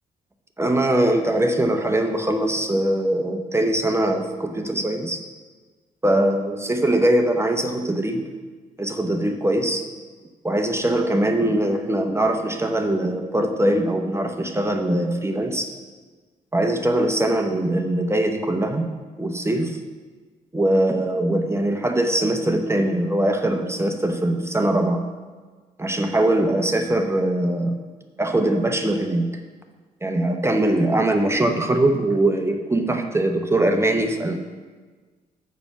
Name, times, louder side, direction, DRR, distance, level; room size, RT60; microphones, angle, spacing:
voice 1, 0.6-5.2 6.0-8.2 8.8-9.8 10.4-15.7 16.5-18.9 19.2-19.8 20.5-25.0 25.8-27.8 28.2-29.3 30.0-34.4, right 1 dB, 10° right, 4 dB, 0.8 m, -22 dB
7.1 x 5.2 x 6.9 m, 1.4 s
figure-of-eight pair, 40°, 21 cm